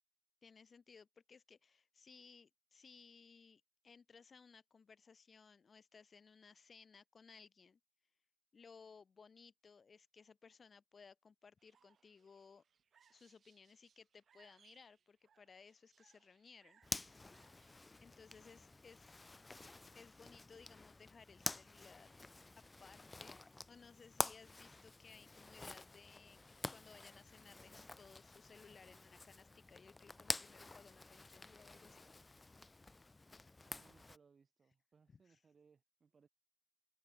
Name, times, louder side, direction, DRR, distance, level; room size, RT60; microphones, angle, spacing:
voice 1, 0.4-7.8 8.5-12.6 13.1-16.8 18.0-19.3 19.9-22.2 22.6-23.4 23.7-26.4 26.7-32.5 35.1-35.4, left 5 dB, 60° left, 6.3 m, -61 dB
sound 1, 11.6-17.8, right 7 dB, 85° right, 7.9 m, -73 dB
Zipper (clothing), 16.8-34.2, left 2 dB, 30° left, 1.8 m, -48 dB
voice 2, 33.6-36.3, right 5 dB, 60° right, 6.8 m, -69 dB
cardioid pair, 80°, 0 cm